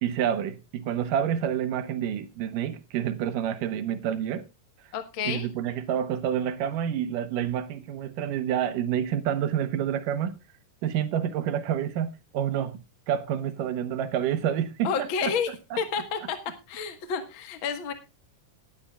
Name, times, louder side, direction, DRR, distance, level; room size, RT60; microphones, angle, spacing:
voice 1, 0.0-4.4 5.3-10.4 10.8-12.8 13.1-15.3, right 9 dB, 75° right, 2.6 m, -28 dB
voice 2, 4.9-5.5 14.8-15.5 15.8-16.4 16.7-17.9, left 6 dB, 50° left, 1.7 m, -30 dB
19.0 x 10.5 x 2.3 m
omnidirectional pair, 3.9 m